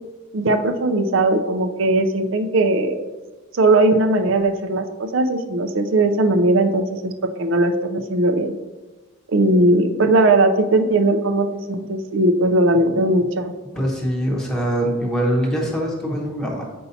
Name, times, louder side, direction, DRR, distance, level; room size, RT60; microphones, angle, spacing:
voice 1, 0.3-3.0 3.5-7.1 7.4-8.5 9.3-13.5, right 2 dB, 65° right, 7 dB, 0.5 m, -18 dB
voice 2, 13.6-16.6, equal, 5° left, -3 dB, 0.9 m, -23 dB
7.0 x 5.4 x 2.7 m, 1.2 s
head